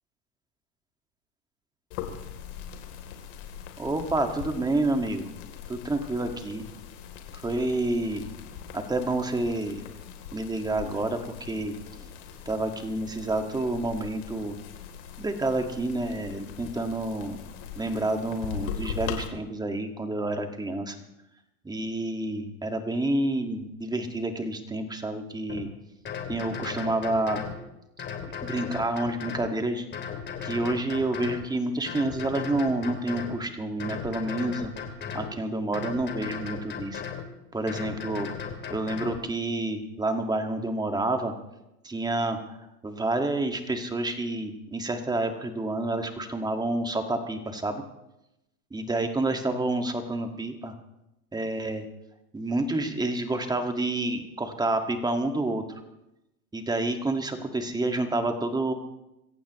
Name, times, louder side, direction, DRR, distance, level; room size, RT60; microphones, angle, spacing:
sound 1, 1.9-19.3, left 8 dB, 55° left, 3.4 m, -41 dB
voice 1, 3.8-5.3 5.7-6.7 7.3-8.3 8.7-9.8 10.3-12.1 12.5-14.6 15.2-17.4 17.8-21.0 21.6-25.7 26.3-27.4 28.4-29.9 30.4-34.7 35.1-37.0 37.5-38.3 38.7-41.3 41.8-42.6 42.8-47.8 48.7-50.7 51.3-51.9 52.3-55.8 56.5-58.7, right 2 dB, 10° right, 5 dB, 1.9 m, -29 dB
sound 2, 25.5-25.6 26.1-27.6 28.0-29.5 29.9-31.5 31.9-33.4 33.8-35.3 35.7-37.3 37.7-39.2, left 7 dB, 20° left, 2.7 m, -36 dB
27.0 x 14.5 x 3.1 m, 0.91 s
hypercardioid pair, 115°, 48 cm